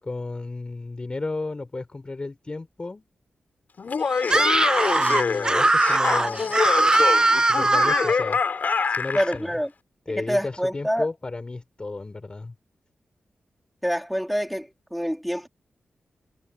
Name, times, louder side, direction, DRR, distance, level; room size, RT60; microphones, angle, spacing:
voice 1, 0.0-3.0 4.9-6.5 7.4-8.4 8.9-9.6 10.1-12.5, left 3 dB, 25° left, 6.2 m, -33 dB
Laughter, 3.8-9.4, left 5 dB, 55° left, 5.4 m, -25 dB
Screaming, 4.2-8.2, right 2 dB, 20° right, 0.9 m, -20 dB
voice 2, 9.1-9.7 10.1-11.1 13.8-15.5, equal, ahead, 3.1 m, -26 dB
wide cardioid pair, 135°, 4 cm